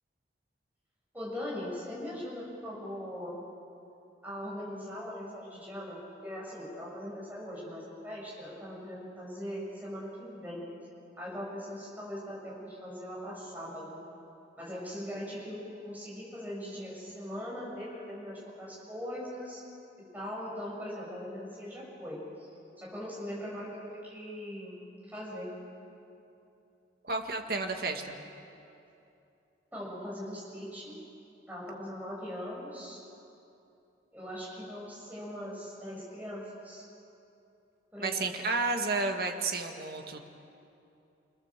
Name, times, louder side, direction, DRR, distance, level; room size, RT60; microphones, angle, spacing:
voice 1, 1.1-3.4 4.2-10.7 11.2-14.0 14.6-19.6 20.1-22.5 22.8-25.5 29.7-30.9 31.5-33.0 34.1-36.8 37.9-38.3, equal, 10° right, -5 dB, 7.6 m, -40 dB
voice 2, 27.0-28.2 38.0-40.2, right 3 dB, 55° right, 4 dB, 1.9 m, -31 dB
29.5 x 20.0 x 7.6 m, 2.8 s
head